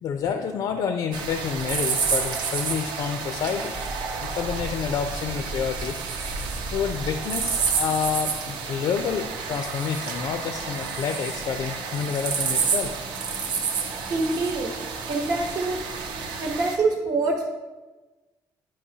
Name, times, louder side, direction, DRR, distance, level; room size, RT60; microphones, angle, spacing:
voice 1, 0.0-3.8 4.2-13.0, left 7 dB, 60° left, 7 dB, 0.5 m, -29 dB
sound 1, 1.1-16.8, right 5 dB, 80° right, 0.9 m, -29 dB
voice 2, 14.1-14.7 15.1-15.8 16.4-17.5, right 3 dB, 55° right, 0 dB, 1.0 m, -25 dB
10.0 x 5.2 x 2.8 m, 1.2 s
cardioid pair, 130°, 8 cm